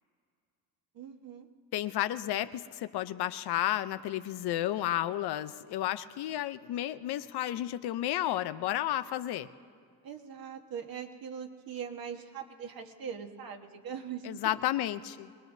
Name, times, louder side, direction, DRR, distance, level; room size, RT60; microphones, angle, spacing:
voice 1, 0.9-1.5 10.0-14.5, right 7 dB, 60° right, 4 dB, 1.5 m, -41 dB
voice 2, 1.7-9.5 14.3-15.3, left 13 dB, 80° left, 12 dB, 0.7 m, -32 dB
23.5 x 20.0 x 2.7 m, 2.1 s
cardioid pair, 100°, 39 cm